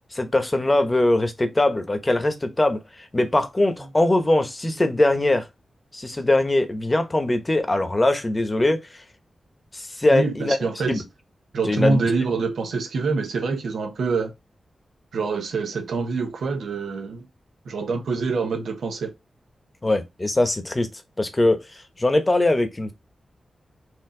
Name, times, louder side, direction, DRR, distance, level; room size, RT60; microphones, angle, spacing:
voice 1, 0.1-5.5 5.9-9.0 9.7-10.6 10.9-11.0 11.7-12.0 19.8-20.9 21.2-22.9, left 2 dB, 25° left, 1.1 m, -21 dB
voice 2, 10.1-11.0 11.5-14.3 15.1-17.3 17.6-19.1, right 4 dB, 90° right, 1.2 m, -25 dB
4.8 x 2.9 x 3.8 m
cardioid pair, 75°, 0 cm